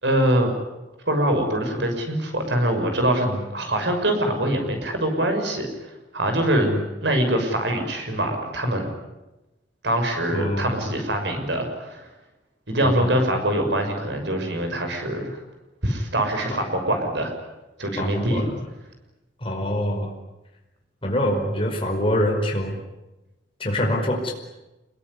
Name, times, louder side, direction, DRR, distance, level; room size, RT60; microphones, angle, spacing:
voice 1, 0.0-0.5 1.1-6.7 7.0-8.9 9.8-12.1 12.7-15.4 15.8-17.3 17.8-18.4, right 1 dB, 65° right, 4 dB, 6.4 m, -24 dB
voice 2, 10.3-10.8 12.8-13.2 18.0-18.5 19.4-20.1 21.0-22.7 23.6-24.3, equal, 30° left, 0 dB, 5.1 m, -25 dB
27.5 x 21.5 x 9.7 m, 1.0 s
head